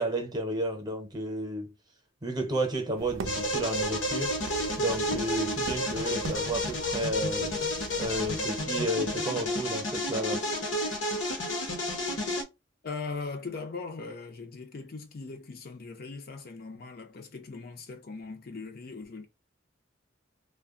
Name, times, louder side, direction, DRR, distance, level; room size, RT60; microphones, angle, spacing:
voice 1, 0.0-1.7 2.2-4.3 4.8-7.6 8.0-10.4, right 1 dB, 20° right, 0.8 m, -32 dB
sound 1, 3.0-8.6, right 4 dB, 80° right, 0.4 m, -42 dB
sound 2, 3.3-12.4, left 1 dB, 75° left, 0.9 m, -31 dB
voice 2, 12.8-19.3, left 4 dB, 50° left, 0.5 m, -40 dB
2.2 x 2.1 x 3.6 m
head